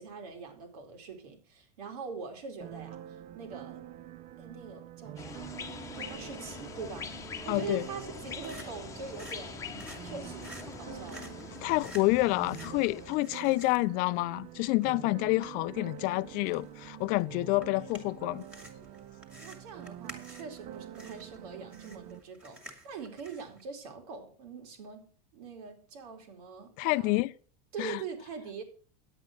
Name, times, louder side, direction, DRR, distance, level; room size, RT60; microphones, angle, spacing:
voice 1, 0.0-3.0 3.3-3.9 4.4-7.1 7.4-11.3 19.4-27.3 27.7-28.6, right 5 dB, 80° right, 3.1 m, -43 dB
sound 1, 2.6-22.2, right 12 dB, 40° right, 0.6 m, -46 dB
sound 2, 5.2-13.2, left 6 dB, 15° left, 1.0 m, -44 dB
voice 2, 7.5-7.9 11.6-18.4 26.8-27.3 27.8-28.0, left 21 dB, 45° left, 0.4 m, -28 dB
sound 3, 8.0-23.6, equal, 5° right, 2.1 m, -53 dB
10.0 x 8.2 x 6.2 m
supercardioid pair, 145°, 19 cm